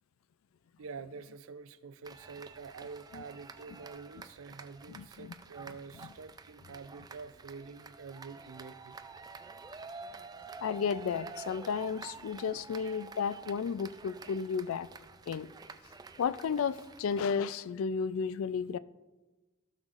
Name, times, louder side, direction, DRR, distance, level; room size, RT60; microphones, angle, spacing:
voice 1, 0.8-8.9, right 5 dB, 80° right, 0.4 m, -47 dB
sound 1, 2.0-17.3, right 4 dB, 20° right, 0.3 m, -49 dB
voice 2, 4.9-5.3 6.0-6.1 10.6-14.9 15.3-15.5 16.2-18.8, left 6 dB, 80° left, 0.3 m, -33 dB
15.5 x 6.4 x 2.5 m
head